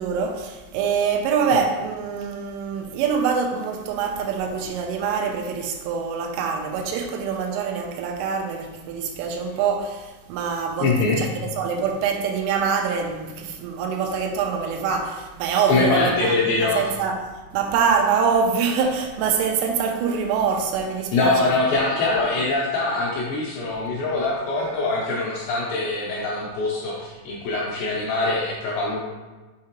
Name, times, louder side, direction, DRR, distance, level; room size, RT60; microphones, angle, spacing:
voice 1, 0.0-17.2 17.5-21.6, right 6 dB, 85° right, 3.1 m, -25 dB
voice 2, 10.8-11.2 15.7-16.8 21.1-29.0, left 3 dB, 80° left, 2.6 m, -23 dB
7.3 x 4.7 x 2.9 m
omnidirectional pair, 5.8 m